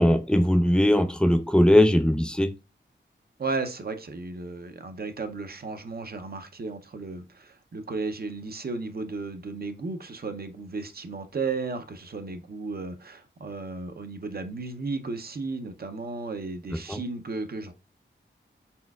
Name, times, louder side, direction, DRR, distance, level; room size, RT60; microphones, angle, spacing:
voice 1, 0.0-2.5 16.9-17.0, left 1 dB, 5° left, 0.5 m, -20 dB
voice 2, 3.4-17.7, right 3 dB, 50° right, 0.6 m, -34 dB
4.3 x 4.3 x 2.3 m
wide cardioid pair, 90°, 20 cm